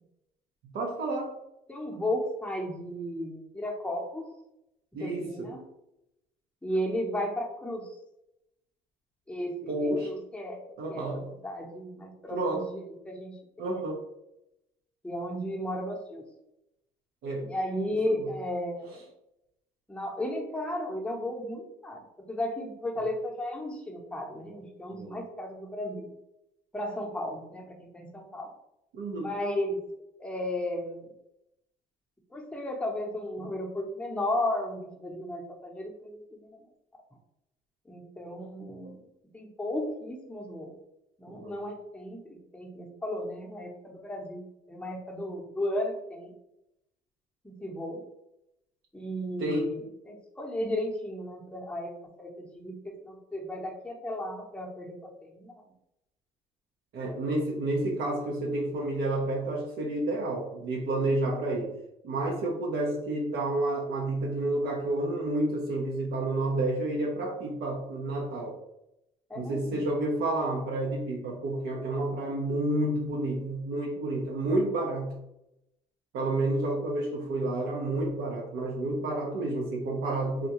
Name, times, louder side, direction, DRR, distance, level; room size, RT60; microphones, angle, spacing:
voice 1, 0.6-1.4 4.9-5.5 9.7-10.1 10.8-11.3 12.3-12.6 13.6-14.0 17.2-17.5 18.1-18.3 24.9-25.2 28.9-29.3 41.3-41.5 49.4-49.8 56.9-61.7 62.0-68.6 69.3-75.2 76.1-80.5, right 2 dB, 75° right, -1 dB, 0.7 m, -30 dB
voice 2, 1.7-4.3 5.0-5.6 6.6-8.0 9.3-10.6 10.9-11.1 11.4-13.8 15.0-16.2 17.4-19.0 19.9-26.1 26.7-28.5 29.2-29.8 30.2-31.1 32.3-36.6 37.9-39.0 39.3-40.7 41.2-46.3 47.4-48.0 48.9-55.6 69.3-69.8, left 1 dB, 5° left, 0 dB, 0.7 m, -34 dB
3.5 x 2.3 x 2.9 m, 0.84 s
cardioid pair, 110°, 17 cm